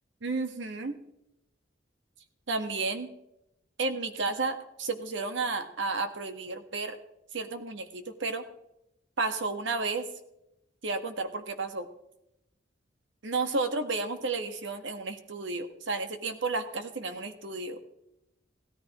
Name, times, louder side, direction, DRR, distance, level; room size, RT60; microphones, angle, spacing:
voice 1, 0.2-1.0 2.5-3.1 3.8-7.0 7.3-8.4 9.2-10.1 10.8-11.9 13.2-17.8, right 3 dB, 70° right, 8 dB, 1.4 m, -32 dB
16.5 x 13.5 x 3.0 m, 0.85 s
head